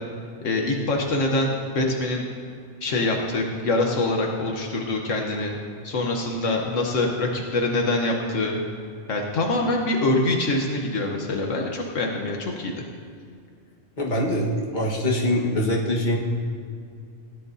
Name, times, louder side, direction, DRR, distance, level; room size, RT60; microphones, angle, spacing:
voice 1, 0.4-2.2 2.8-5.5 5.8-8.6 9.1-12.7, left 2 dB, 75° left, 1 dB, 1.4 m, -24 dB
voice 2, 14.0-16.2, left 1 dB, 40° left, -2 dB, 1.6 m, -23 dB
16.5 x 10.5 x 2.7 m, 2.3 s
omnidirectional pair, 1.3 m